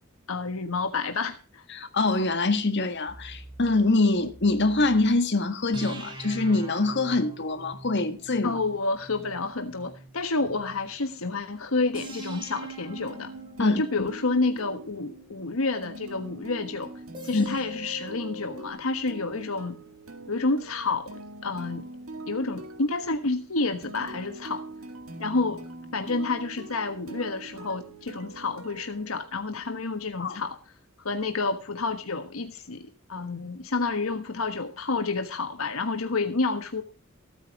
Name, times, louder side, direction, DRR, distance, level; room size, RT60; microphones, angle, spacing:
voice 1, 0.3-1.6 8.4-13.3 13.6-16.9 17.2-19.8 20.3-21.9 22.3-24.6 25.2-25.6 25.9-30.6 31.0-36.8, left 3 dB, 85° left, 1.4 m, -29 dB
voice 2, 1.7-8.6 13.6-14.1 17.3-17.6 30.2-30.4, left 2 dB, 55° left, 1.7 m, -24 dB
sound 1, 3.1-5.1 5.7-10.9 11.9-16.2 17.1-18.7, right 1 dB, 25° right, 3.0 m, -43 dB
sound 2, 13.1-29.8, right 2 dB, 80° right, 2.1 m, -44 dB
15.0 x 9.2 x 4.8 m
head